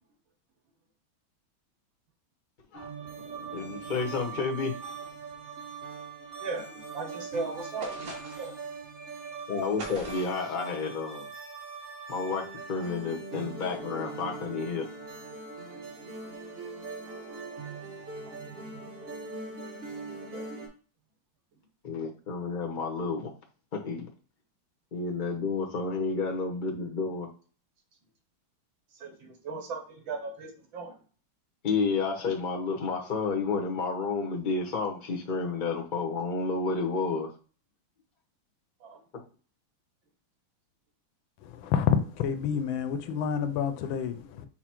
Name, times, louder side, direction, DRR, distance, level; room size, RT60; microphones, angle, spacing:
sound 1, 2.7-20.7, right 4 dB, 35° right, 1.3 m, -41 dB
voice 1, 3.5-4.9 9.5-11.2 12.1-12.4 12.7-14.8 21.8-23.3 23.7-24.1 24.9-27.3 31.6-37.3, left 4 dB, 55° left, 0.5 m, -30 dB
voice 2, 6.4-8.0 8.4-8.5 20.3-20.5 28.9-30.9 38.8-39.0, right 3 dB, 70° right, 1.8 m, -37 dB
sound 2, 7.8-8.6 9.8-10.5, right 1 dB, 50° right, 1.5 m, -42 dB
voice 3, 41.6-41.9 42.2-44.5, left 8 dB, 75° left, 1.3 m, -29 dB
5.9 x 2.1 x 4.3 m
omnidirectional pair, 2.3 m